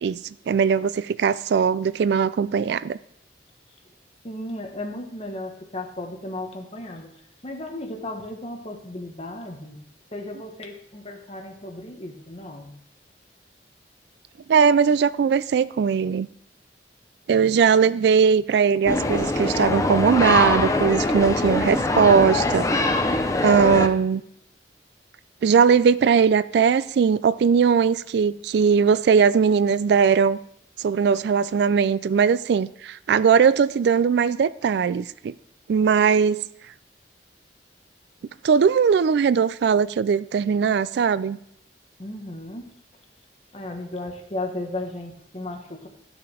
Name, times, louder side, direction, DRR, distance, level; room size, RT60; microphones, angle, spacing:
voice 1, 0.0-3.0 14.5-16.3 17.3-22.7 23.4-24.2 25.4-30.4 30.8-35.3 35.7-36.4 38.4-41.4, right 6 dB, 65° right, 0.3 m, -19 dB
voice 2, 4.2-7.1 7.4-9.8 10.1-12.7 42.0-42.7 43.5-45.9, left 1 dB, 35° left, 1.4 m, -35 dB
sound 1, 18.9-23.9, left 2 dB, 20° left, 0.7 m, -23 dB
12.5 x 5.9 x 4.9 m
head